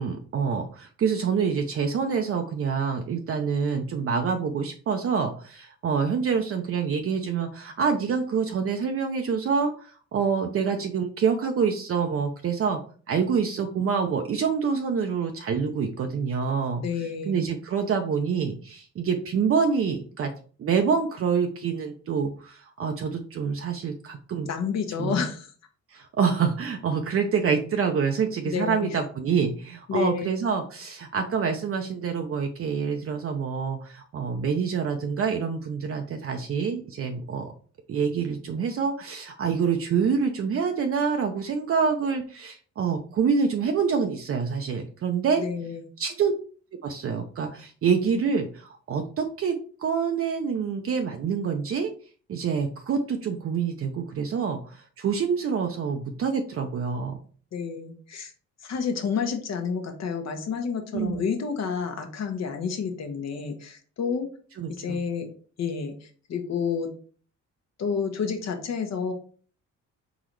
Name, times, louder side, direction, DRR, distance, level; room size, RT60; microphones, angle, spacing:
voice 1, 0.0-12.8 13.1-16.8 17.3-20.3 20.6-24.5 25.0-25.1 25.9-37.5 37.9-45.4 46.0-46.3 46.8-49.5 49.8-51.9 52.3-57.2 60.9-61.2 64.6-65.0, right 6 dB, 50° right, 4 dB, 0.6 m, -26 dB
voice 2, 16.8-17.4 24.4-25.5 28.4-28.9 29.9-30.3 45.4-45.9 57.5-58.3 58.6-64.3 64.7-65.3 65.6-66.9 67.8-69.1, left 6 dB, 60° left, 5 dB, 1.1 m, -29 dB
3.9 x 3.9 x 3.1 m, 0.42 s
cardioid pair, 90°, 30 cm